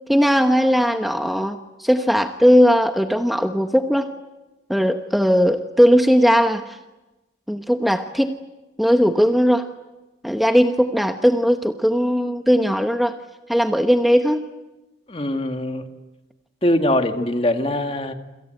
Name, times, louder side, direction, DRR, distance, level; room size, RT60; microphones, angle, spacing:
voice 1, 0.1-4.1 4.7-6.8 7.5-8.4 8.8-9.7 10.2-13.1 13.5-14.4, equal, ahead, 5 dB, 1.0 m, -18 dB
voice 2, 15.1-15.8 16.6-18.1, left 1 dB, 30° left, 6 dB, 2.0 m, -22 dB
28.0 x 26.5 x 7.9 m, 1.1 s
head